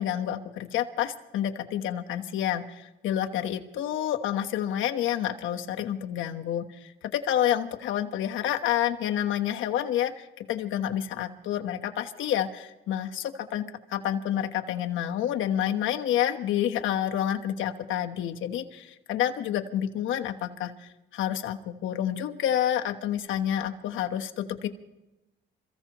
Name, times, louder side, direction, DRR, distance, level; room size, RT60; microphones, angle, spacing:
voice 1, 0.0-24.7, left 10 dB, 80° left, 4 dB, 1.2 m, -29 dB
27.5 x 15.0 x 3.0 m, 0.97 s
cardioid pair, 90°, 20 cm